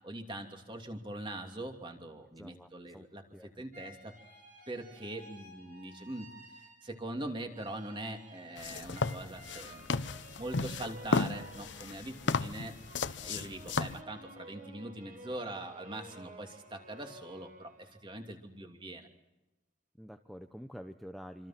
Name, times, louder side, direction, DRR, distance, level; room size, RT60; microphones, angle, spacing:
voice 1, 0.0-4.1 4.7-9.9 10.4-12.7 13.2-19.1, right 1 dB, 25° right, 4 dB, 2.8 m, -42 dB
voice 2, 2.4-3.0 3.3-3.9 20.0-21.5, equal, ahead, 5 dB, 0.8 m, -48 dB
sound 1, 3.7-7.1 7.5-18.1, right 1 dB, 40° right, 7.5 m, -53 dB
sound 2, 8.6-14.0, left 3 dB, 70° left, 0.9 m, -34 dB
27.0 x 26.0 x 6.0 m, 0.96 s
head